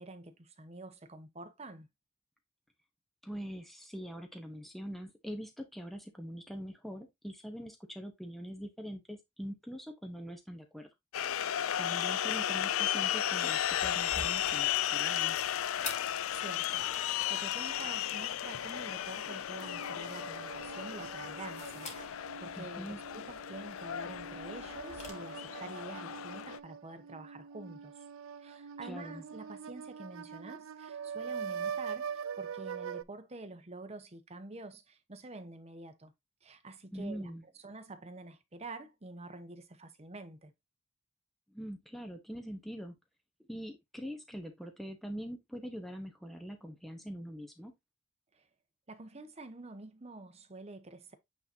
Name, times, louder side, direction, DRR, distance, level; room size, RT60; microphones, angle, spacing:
voice 1, 0.0-1.9 16.3-27.9 28.4-36.1 36.4-37.3 37.6-40.5 48.3-48.4 48.9-51.1, right 2 dB, 30° right, 1.0 m, -48 dB
voice 2, 3.2-10.9 11.8-15.4 22.6-23.0 28.8-29.2 36.9-37.4 41.5-43.0 43.5-47.7, equal, ahead, 1.0 m, -43 dB
sound 1, 11.1-26.6, left 11 dB, 85° left, 0.4 m, -34 dB
sound 2, 13.6-25.1, left 2 dB, 35° left, 2.2 m, -50 dB
sound 3, 19.6-33.0, right 7 dB, 75° right, 0.4 m, -43 dB
8.7 x 4.0 x 2.7 m
head